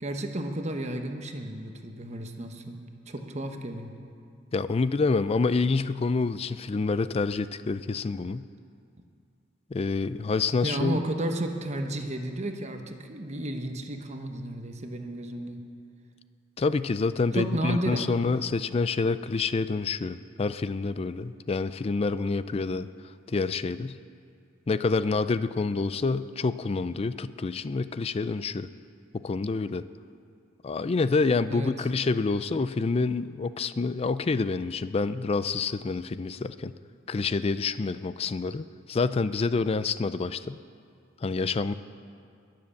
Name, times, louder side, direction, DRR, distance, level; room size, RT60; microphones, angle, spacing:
voice 1, 0.0-2.8 3.1-3.9 10.6-15.6 17.3-18.1 31.5-31.8, right 1 dB, 35° right, 4 dB, 1.0 m, -32 dB
voice 2, 4.5-8.5 9.7-11.0 16.6-22.9 23.3-24.0 24.7-28.7 29.1-29.8 30.6-36.7 37.1-40.6 41.2-41.7, left 4 dB, 30° left, 14 dB, 0.4 m, -27 dB
21.5 x 7.7 x 7.1 m, 2.4 s
head